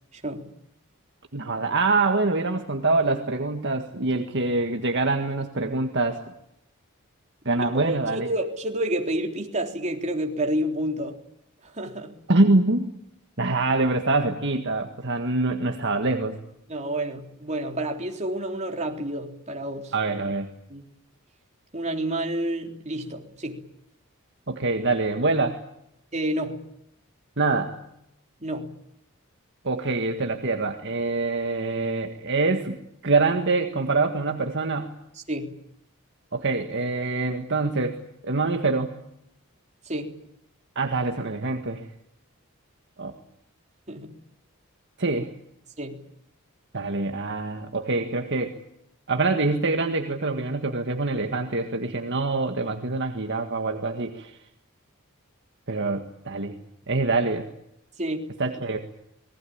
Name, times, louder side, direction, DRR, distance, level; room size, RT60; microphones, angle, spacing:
voice 1, 0.1-0.5 7.6-11.2 11.7-12.1 16.7-19.9 20.7-20.8 21.7-23.6 26.1-26.6 28.4-28.7 35.3-35.5 39.9-40.2 43.9-44.1 45.8-46.0 58.0-58.2, right 1 dB, 30° right, 2 dB, 3.6 m, -29 dB
voice 2, 1.3-6.3 7.5-8.3 12.3-12.9 13.4-16.4 19.9-20.5 24.5-25.6 27.4-27.7 29.6-34.9 36.3-38.9 40.8-41.8 43.0-43.1 45.0-45.3 46.7-48.5 49.1-54.3 55.7-56.6 56.9-57.5 58.4-58.8, right 3 dB, 55° right, 5 dB, 1.8 m, -25 dB
27.0 x 20.0 x 8.8 m, 0.77 s
head